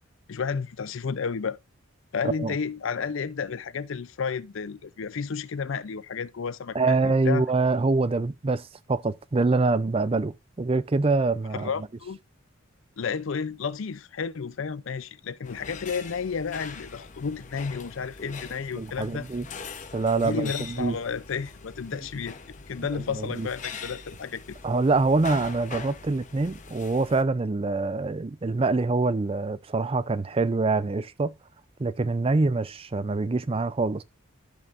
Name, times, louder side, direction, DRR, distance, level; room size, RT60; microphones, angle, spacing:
voice 1, 0.3-1.6 2.1-7.0 7.3-7.4 11.5-12.2 13.0-19.3 20.2-24.6, left 5 dB, 65° left, 0.5 m, -32 dB
voice 2, 6.7-11.7 18.8-19.5 19.9-21.0 22.9-23.5 24.6-31.3 31.8-34.0, right 3 dB, 25° right, 0.4 m, -25 dB
sound 1, 15.4-27.2, left 5 dB, 35° left, 0.9 m, -42 dB
14.0 x 5.4 x 2.5 m
head